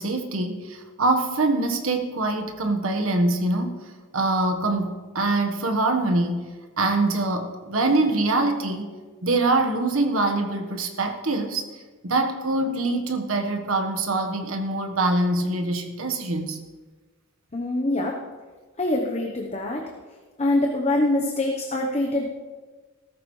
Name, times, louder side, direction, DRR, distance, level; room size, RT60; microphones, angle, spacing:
voice 1, 0.0-3.8 4.1-6.5 6.8-8.9 9.2-11.6 12.0-16.6, right 2 dB, 70° right, 5 dB, 1.4 m, -24 dB
voice 2, 17.5-18.2 18.8-19.9 20.4-22.3, left 1 dB, 30° left, 1 dB, 1.0 m, -24 dB
16.0 x 14.0 x 3.3 m, 1.4 s
head